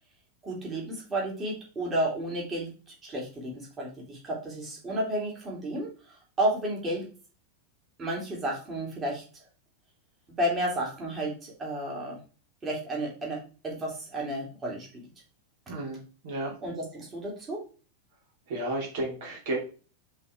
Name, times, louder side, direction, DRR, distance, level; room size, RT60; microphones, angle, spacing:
voice 1, 0.4-2.7 3.0-7.1 8.0-9.2 10.4-12.2 12.6-15.1 16.6-17.6, right 1 dB, 20° right, -2 dB, 3.0 m, -32 dB
voice 2, 15.7-16.5 18.5-19.6, right 1 dB, 50° right, -1 dB, 3.0 m, -32 dB
10.5 x 4.1 x 3.6 m, 0.36 s
figure-of-eight pair, 90°, 0 cm